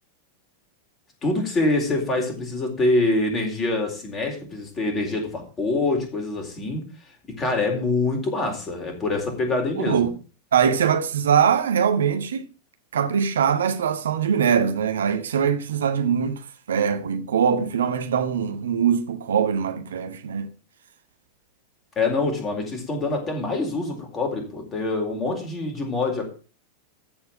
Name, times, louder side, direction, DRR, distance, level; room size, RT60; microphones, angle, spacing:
voice 1, 1.2-6.8 7.3-10.1 22.0-26.3, left 2 dB, 25° left, 4.1 m, -25 dB
voice 2, 9.8-10.1 10.5-12.4 12.9-20.5, right 7 dB, 65° right, 1.1 m, -22 dB
14.5 x 4.8 x 7.5 m
figure-of-eight pair, 90°, 0 cm